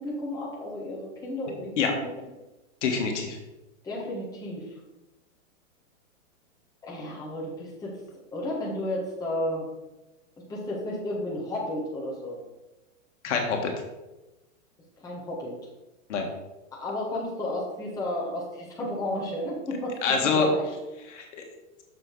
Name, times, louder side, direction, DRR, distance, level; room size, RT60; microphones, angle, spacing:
voice 1, 0.0-2.3 3.8-4.7 6.8-8.0 8.3-9.7 10.4-12.4 15.0-15.6 16.7-20.7, left 1 dB, 10° left, -5 dB, 1.7 m, -33 dB
voice 2, 2.8-3.4 13.2-13.7 16.1-16.3 20.0-20.5 21.1-21.4, left 5 dB, 60° left, 2 dB, 1.8 m, -25 dB
6.7 x 6.1 x 4.7 m, 1.0 s
hypercardioid pair, 155°, 40 cm